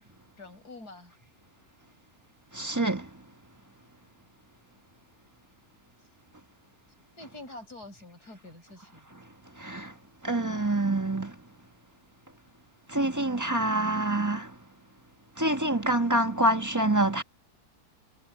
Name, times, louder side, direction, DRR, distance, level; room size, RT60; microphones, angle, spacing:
voice 1, 0.4-1.1 7.2-9.1, left 2 dB, 80° left, 8.1 m, -46 dB
voice 2, 2.5-3.1 9.6-9.9 10.2-11.3 12.9-14.5 15.4-17.2, right 1 dB, 10° right, 1.4 m, -26 dB
omnidirectional pair, 1.6 m